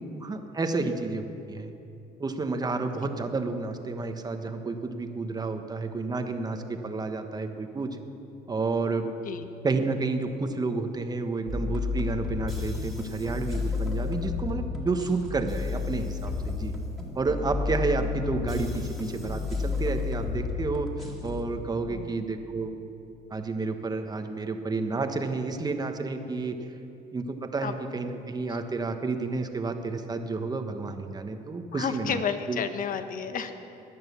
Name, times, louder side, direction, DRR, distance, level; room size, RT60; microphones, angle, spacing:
voice 1, 0.1-1.7 2.2-8.0 8.5-9.1 9.6-16.7 17.1-20.9 21.2-22.7 23.3-26.6 27.1-32.2 32.5-32.6, right 3 dB, 25° right, 6 dB, 1.2 m, -30 dB
sound 1, 11.5-21.4, left 5 dB, ahead, 2.5 m, -32 dB
voice 2, 21.9-22.2 27.6-27.7 31.7-33.5, left 7 dB, 55° left, 8 dB, 1.2 m, -31 dB
16.5 x 10.5 x 6.9 m, 2.8 s
cardioid pair, 110°, 17 cm